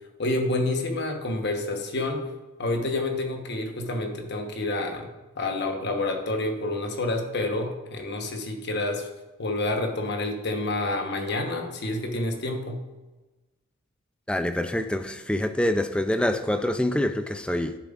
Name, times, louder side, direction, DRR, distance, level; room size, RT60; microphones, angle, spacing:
voice 1, 0.2-2.3 2.6-5.1 5.4-9.1 9.4-12.8, left 2 dB, 55° left, 1.1 m, -28 dB
voice 2, 14.3-17.8, left 1 dB, 5° left, 0.3 m, -26 dB
11.0 x 7.0 x 2.5 m
head